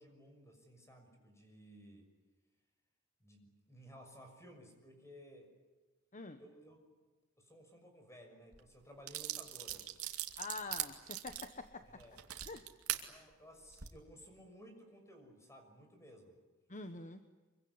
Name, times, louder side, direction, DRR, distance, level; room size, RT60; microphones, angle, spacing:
voice 1, 0.0-2.1 3.2-5.5 6.4-6.8 7.4-9.9 11.9-12.2 13.1-16.4, equal, 15° left, 5 dB, 6.3 m, -57 dB
sound 1, 8.5-8.6 9.1-13.0 13.6-13.9, right 13 dB, 80° right, 2.4 m, -40 dB
voice 2, 10.4-11.9 12.4-12.7 16.7-17.2, left 3 dB, 35° left, 8 dB, 1.2 m, -46 dB
25.5 x 24.0 x 9.6 m, 1.2 s
head